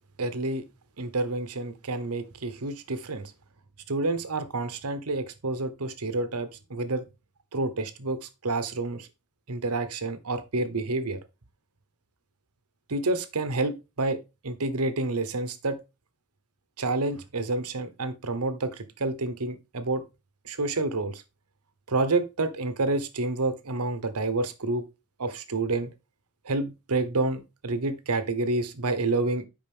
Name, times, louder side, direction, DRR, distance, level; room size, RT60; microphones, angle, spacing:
voice 1, 0.2-0.6 1.0-3.3 3.9-7.0 7.5-9.1 9.5-11.2 12.9-14.2 14.4-15.8 16.8-20.0 20.4-21.2 21.9-24.8 25.2-25.9 26.4-29.4, right 2 dB, 85° right, 1.1 m, -29 dB
8.7 x 5.3 x 3.5 m
head